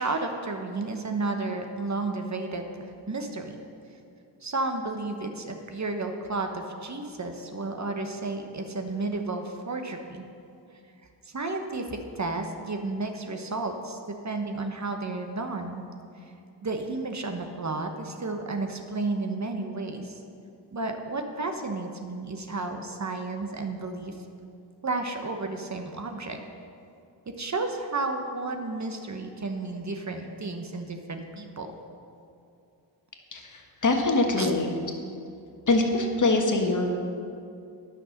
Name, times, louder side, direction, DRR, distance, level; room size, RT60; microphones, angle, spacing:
voice 1, 0.0-3.5 4.4-10.2 11.3-15.8 16.6-20.2 20.7-24.1 24.8-26.4 27.3-31.7 34.4-34.5, right 3 dB, 35° right, 5 dB, 1.0 m, -32 dB
voice 2, 33.3-34.7 35.7-36.9, left 2 dB, 40° left, 3 dB, 1.4 m, -24 dB
10.0 x 6.2 x 6.5 m, 2.5 s
cardioid pair, 70°, 47 cm